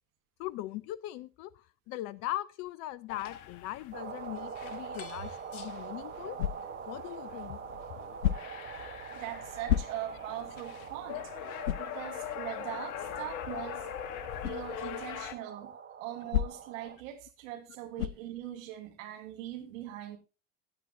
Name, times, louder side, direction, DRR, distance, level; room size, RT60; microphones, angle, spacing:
voice 1, 0.4-6.4 6.9-7.6 13.8-13.9 14.8-14.9 15.2-15.3, left 15 dB, 35° left, 21 dB, 0.5 m, -40 dB
sound 1, 3.1-15.3, left 11 dB, 50° left, 1.2 m, -43 dB
sound 2, 3.9-17.0, right 7 dB, 25° right, 1.7 m, -44 dB
sound 3, 6.4-6.9 8.2-8.7 9.7-10.3 10.8-10.9 11.6-12.0 14.4-14.7 16.3-16.8 18.0-18.3, left 11 dB, 65° left, 0.7 m, -31 dB
voice 2, 9.1-11.2 11.8-13.9 14.4-15.7 16.0-20.2, right 12 dB, 60° right, 3 dB, 2.8 m, -41 dB
17.0 x 9.6 x 2.7 m, 0.32 s
figure-of-eight pair, 75°, 44 cm